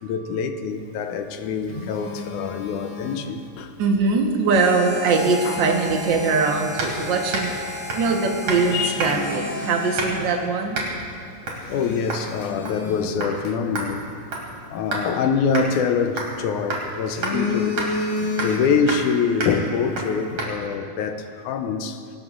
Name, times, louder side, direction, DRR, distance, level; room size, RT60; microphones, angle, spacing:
voice 1, 0.0-3.7 5.5-5.6 8.7-9.0 11.7-14.1 14.7-17.9 18.2-22.0, left 6 dB, 75° left, 1.9 m, -25 dB
Telephone, 1.1-3.7 5.0-6.9 7.5-7.6 8.2-8.3 8.6-10.7 11.0-11.1 11.6-14.0 15.5-16.5 16.9-19.0 19.3-19.5, left 3 dB, 50° left, 1.8 m, -32 dB
voice 2, 1.7-2.1 2.6-2.7 3.8-7.5 7.9-10.8, right 4 dB, 75° right, 1.0 m, -22 dB
Harmonica, 4.5-10.5, left 1 dB, 15° right, 2.5 m, -34 dB
sound 1, 6.8-7.0 7.3-7.6 7.9-8.1 8.5-8.7 9.0-9.3 10.0-10.3 10.7-10.9 11.5-11.6 12.1-12.3 12.7-12.9 13.2-13.3 13.8-15.1 15.5-15.7 16.2-16.4 16.7-16.9 17.2-17.4 17.8-17.9 18.4-18.6 18.9-19.1 19.4-19.6 20.0-20.1 20.4-20.5, right 2 dB, 55° right, 3.7 m, -29 dB
24.5 x 18.5 x 2.5 m
omnidirectional pair, 4.0 m